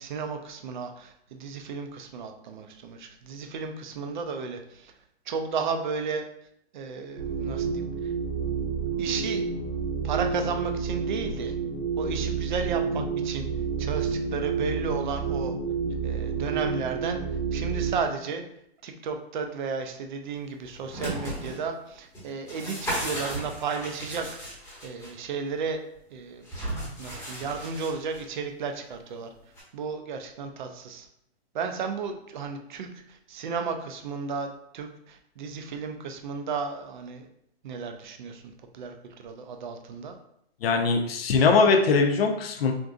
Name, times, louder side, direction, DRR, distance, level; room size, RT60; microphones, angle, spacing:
voice 1, 0.0-4.9 5.3-6.2 6.7-8.1 9.0-9.4 10.0-11.5 12.0-13.5 13.8-15.6 16.0-17.2 17.5-18.4 18.8-24.3 24.8-25.8 26.1-26.4 27.0-29.3 29.7-31.1 31.5-37.3 37.6-40.2, right 5 dB, 50° right, 5 dB, 0.4 m, -33 dB
sound 1, 7.2-18.1, right 5 dB, 85° right, 0.9 m, -29 dB
sound 2, 20.7-21.6 22.1-25.1 26.4-28.2 29.6-29.7, right 1 dB, 5° left, 0.9 m, -35 dB
voice 2, 40.6-42.7, left 4 dB, 65° left, 4 dB, 0.6 m, -21 dB
3.7 x 2.6 x 2.4 m, 0.74 s
hypercardioid pair, 160°, 32 cm